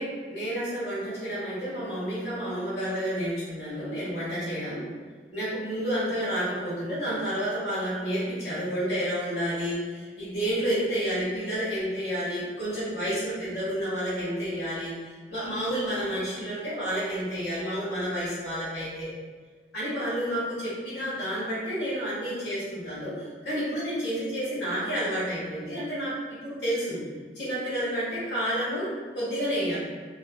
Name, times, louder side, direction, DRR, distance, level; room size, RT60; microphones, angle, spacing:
voice 1, 0.0-4.9 5.3-19.1 19.7-27.0 27.3-29.8, equal, 75° left, -10 dB, 1.5 m, -30 dB
3.2 x 2.6 x 2.2 m, 1.5 s
head